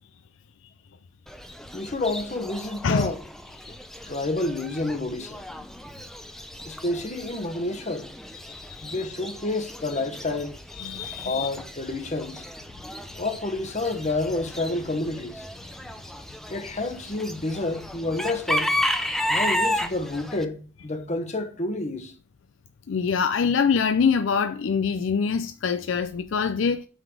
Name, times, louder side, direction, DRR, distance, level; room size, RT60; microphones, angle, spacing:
Chicken rooster / Bird, 1.3-20.4, left 1 dB, ahead, 0.5 m, -33 dB
voice 1, 1.7-3.2 4.1-5.5 6.6-8.1 8.8-10.6 11.2-12.4 13.2-15.5 16.5-18.7 19.2-22.1, left 2 dB, 35° left, 1.2 m, -29 dB
voice 2, 8.4-9.1 10.7-11.5 19.1-19.4 22.9-26.9, left 6 dB, 65° left, 0.4 m, -25 dB
8.0 x 3.9 x 6.1 m
head